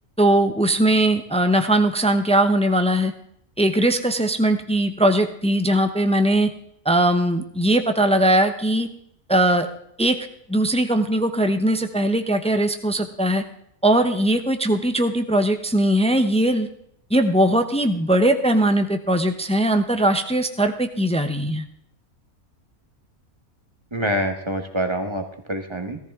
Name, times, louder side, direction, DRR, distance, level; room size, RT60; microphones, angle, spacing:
voice 1, 0.2-3.1 3.6-6.5 6.8-8.9 9.3-9.7 10.0-10.2 10.5-13.4 13.8-16.7 17.1-21.6, right 1 dB, 10° left, 7 dB, 0.3 m, -20 dB
voice 2, 23.9-26.0, right 1 dB, 20° right, 4 dB, 1.3 m, -26 dB
17.5 x 14.0 x 3.6 m, 0.72 s
omnidirectional pair, 1.6 m